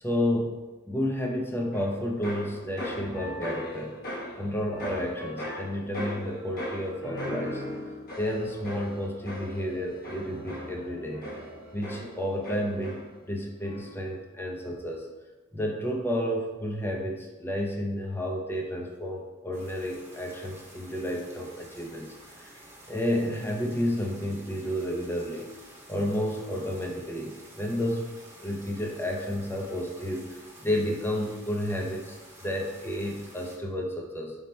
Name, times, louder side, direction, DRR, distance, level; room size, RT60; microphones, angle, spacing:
voice 1, 0.0-7.6 8.2-11.3 11.7-15.1 15.5-22.5 22.9-25.5 25.9-28.1 28.4-32.2 32.4-34.4, equal, 10° left, 0 dB, 0.5 m, -31 dB
sound 1, 1.7-13.3 13.6-14.1, left 1 dB, 50° left, 1.0 m, -39 dB
sound 2, 19.5-33.6, right 1 dB, 15° right, 0.9 m, -50 dB
5.3 x 2.1 x 4.2 m, 1.1 s
head